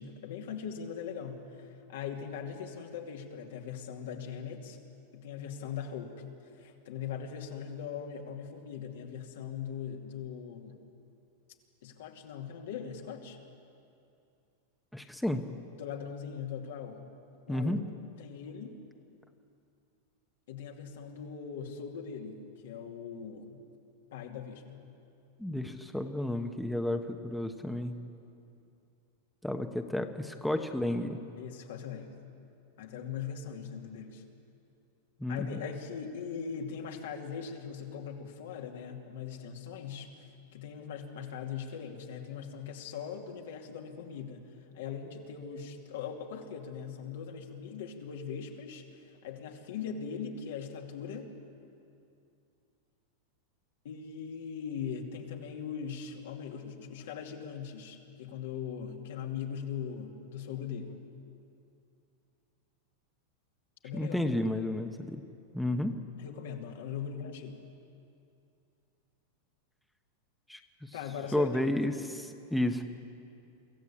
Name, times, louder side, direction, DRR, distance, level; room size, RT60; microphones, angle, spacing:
voice 1, 0.0-4.8 5.1-10.8 11.8-13.4 15.8-17.1 17.5-17.8 18.2-18.8 20.5-23.6 24.1-24.8 31.3-32.2 32.8-34.2 35.3-48.9 49.2-51.3 53.8-61.0 63.8-64.3 66.2-67.6 70.9-71.9, left 7 dB, 75° left, 2 dB, 2.6 m, -40 dB
voice 2, 14.9-15.4 17.5-17.8 25.4-27.9 29.4-31.2 35.2-35.6 63.9-65.2 65.5-65.9 70.5-70.9 71.3-72.8, left 1 dB, ahead, 5 dB, 1.1 m, -32 dB
24.5 x 14.5 x 8.6 m, 2.6 s
hypercardioid pair, 125°, 0 cm